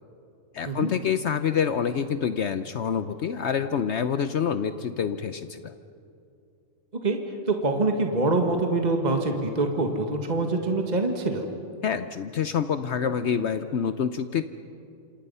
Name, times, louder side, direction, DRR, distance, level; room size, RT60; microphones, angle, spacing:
voice 1, 0.5-5.7 11.8-14.4, left 7 dB, 60° left, 11 dB, 0.9 m, -27 dB
voice 2, 7.5-11.5, right 2 dB, 30° right, 4 dB, 1.7 m, -25 dB
27.5 x 27.5 x 5.6 m, 2.6 s
omnidirectional pair, 1.4 m